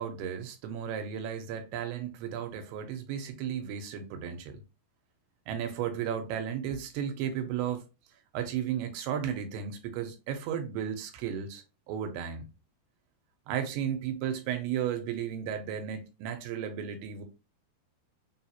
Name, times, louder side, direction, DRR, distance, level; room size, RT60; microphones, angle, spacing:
voice 1, 0.0-4.6 5.5-7.8 8.3-12.5 13.5-17.2, right 9 dB, 80° right, 2.8 m, -34 dB
6.0 x 2.4 x 2.8 m
omnidirectional pair, 4.7 m